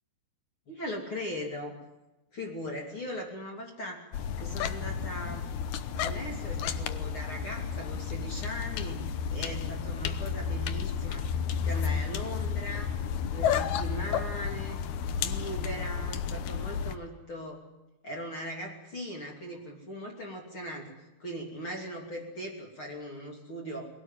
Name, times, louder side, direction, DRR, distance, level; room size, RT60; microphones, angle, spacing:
voice 1, 0.7-1.8 2.3-4.0 4.4-5.5 5.9-9.0 9.3-11.2 11.6-12.9 13.3-14.8 15.2-17.6 18.0-20.9 21.2-23.9, equal, 35° left, 1 dB, 3.4 m, -39 dB
sound 1, 4.1-16.9, left 7 dB, 75° left, 1.8 m, -32 dB
22.0 x 17.5 x 9.1 m, 0.98 s
omnidirectional pair, 4.7 m